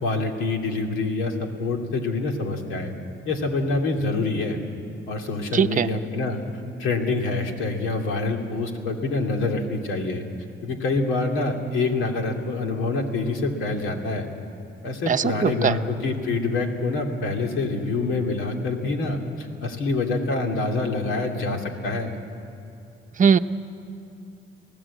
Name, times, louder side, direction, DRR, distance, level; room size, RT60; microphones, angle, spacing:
voice 1, 0.0-2.9 3.3-4.6 5.1-6.4 6.8-10.2 10.6-14.3 14.8-22.2, left 3 dB, 85° left, 3 dB, 2.5 m, -26 dB
voice 2, 5.5-5.9 15.1-15.8 23.2-23.4, right 7 dB, 40° right, 9 dB, 0.8 m, -20 dB
26.0 x 17.5 x 8.5 m, 2.6 s
cardioid pair, 90°, 20 cm